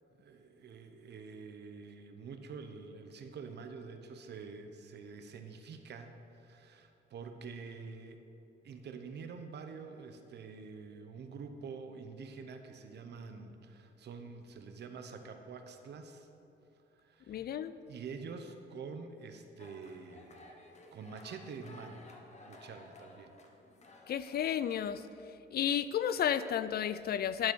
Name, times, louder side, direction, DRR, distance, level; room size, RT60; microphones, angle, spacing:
voice 1, 0.2-8.2 8.6-16.3 16.9-17.5 17.9-20.5 20.9-22.1 22.4-23.4, right 5 dB, 60° right, 7 dB, 0.8 m, -47 dB
voice 2, 17.3-17.8 24.1-25.0 25.5-27.5, left 9 dB, 50° left, 14 dB, 0.4 m, -32 dB
sound 1, 19.6-24.8, left 2 dB, 35° left, 1.2 m, -56 dB
11.0 x 4.1 x 6.2 m, 2.8 s
cardioid pair, 90°, 20 cm